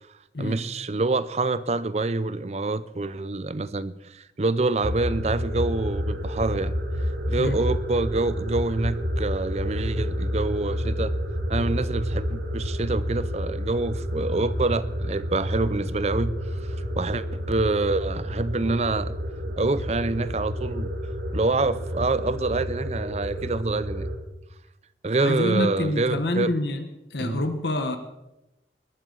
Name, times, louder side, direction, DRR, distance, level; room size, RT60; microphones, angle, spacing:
voice 1, 0.4-6.8 7.3-11.1 11.5-16.3 17.0-19.1 19.6-20.9 21.3-24.1 25.0-26.5 27.2-27.4, right 3 dB, 35° right, 15 dB, 0.5 m, -26 dB
sound 1, 4.8-24.2, equal, 70° right, 2.2 m, -30 dB
voice 2, 25.2-28.0, left 1 dB, 75° left, 8 dB, 1.1 m, -27 dB
21.0 x 12.0 x 3.9 m, 0.94 s
head